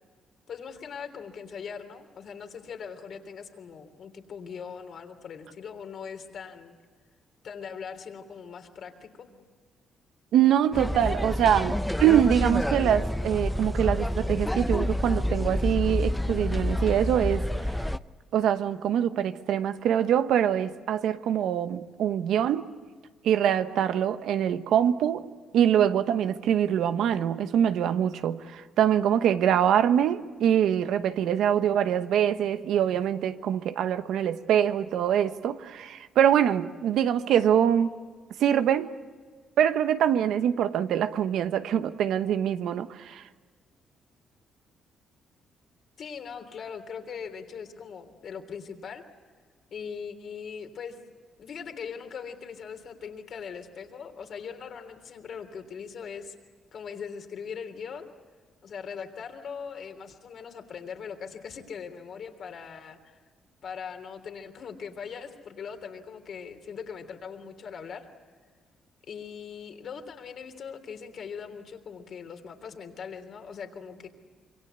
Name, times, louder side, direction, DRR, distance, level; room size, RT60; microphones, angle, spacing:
voice 1, 0.5-6.7 7.4-9.4 46.0-49.0 49.7-51.0 51.4-56.3 56.7-58.1 58.6-63.2 63.6-68.1 69.1-74.1, left 6 dB, 60° left, 3.3 m, -40 dB
voice 2, 10.3-17.4 18.3-22.7 23.2-25.2 25.5-38.0 38.4-38.9 39.6-43.2, right 9 dB, 80° right, 1.1 m, -24 dB
sound 1, 10.7-18.0, left 1 dB, 5° left, 0.7 m, -28 dB
26.5 x 23.5 x 8.2 m
cardioid pair, 90°, 0 cm